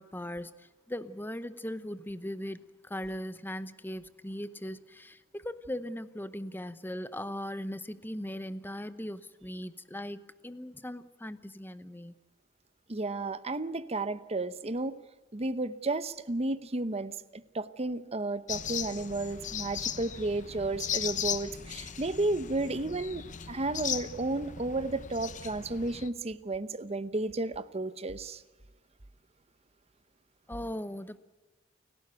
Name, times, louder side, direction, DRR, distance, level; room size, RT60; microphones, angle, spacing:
voice 1, 0.0-12.1 30.5-31.2, left 1 dB, 10° left, 13 dB, 0.9 m, -39 dB
voice 2, 12.9-15.0 15.3-17.1 17.5-28.4, right 2 dB, 30° right, 14 dB, 0.9 m, -32 dB
sound 1, 18.5-26.1, left 8 dB, 40° left, 1.0 m, -37 dB
29.5 x 12.0 x 9.1 m, 1.2 s
head